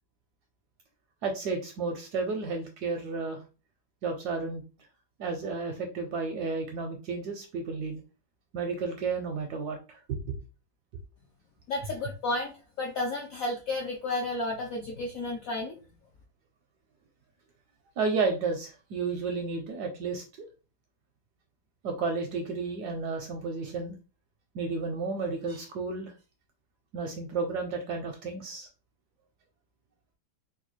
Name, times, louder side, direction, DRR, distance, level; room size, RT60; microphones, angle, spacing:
voice 1, 1.2-3.4 4.0-4.6 5.2-8.0 8.5-10.4 18.0-20.5 21.8-24.0 24.5-26.1 26.9-28.7, right 4 dB, 75° right, 4 dB, 0.9 m, -32 dB
voice 2, 11.7-15.7, left 2 dB, 75° left, 0 dB, 0.8 m, -32 dB
4.0 x 2.2 x 3.0 m, 0.33 s
omnidirectional pair, 2.1 m